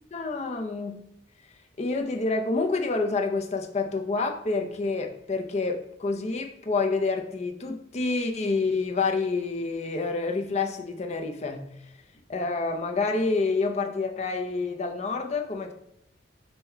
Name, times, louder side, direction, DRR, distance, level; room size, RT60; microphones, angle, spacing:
voice 1, 0.1-1.0 1.8-11.7 12.3-15.7, left 3 dB, 40° left, 4 dB, 0.5 m, -28 dB
5.5 x 2.2 x 4.4 m, 0.81 s
head